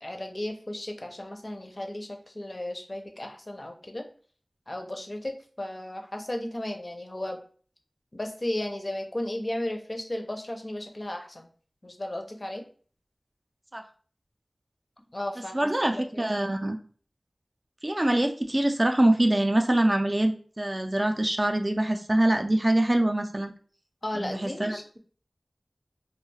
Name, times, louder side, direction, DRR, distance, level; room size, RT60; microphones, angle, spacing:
voice 1, 0.0-4.0 4.7-7.4 8.1-11.5 11.8-12.6 15.1-16.5 24.0-25.0, left 1 dB, 45° left, 4 dB, 0.5 m, -35 dB
voice 2, 15.5-16.8 17.8-23.5 24.1-24.8, right 1 dB, 35° right, 5 dB, 0.3 m, -24 dB
2.3 x 2.2 x 3.1 m, 0.43 s
wide cardioid pair, 50°, 0 cm